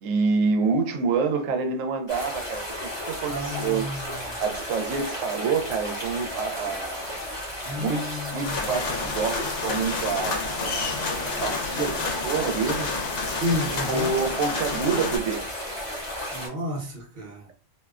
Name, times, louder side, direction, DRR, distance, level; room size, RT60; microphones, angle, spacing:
voice 1, 0.0-3.9 4.1-7.1 7.7-12.9 13.8-15.5, right 5 dB, 90° right, 1.0 m, -27 dB
sound 1, 2.1-16.5, left 1 dB, 25° left, 0.7 m, -34 dB
voice 2, 3.2-4.3 7.6-8.5 13.4-14.1 16.3-17.5, left 1 dB, 45° right, 0.8 m, -31 dB
sound 2, 8.4-15.2, left 4 dB, 70° left, 0.9 m, -30 dB
2.6 x 2.1 x 2.3 m
omnidirectional pair, 1.3 m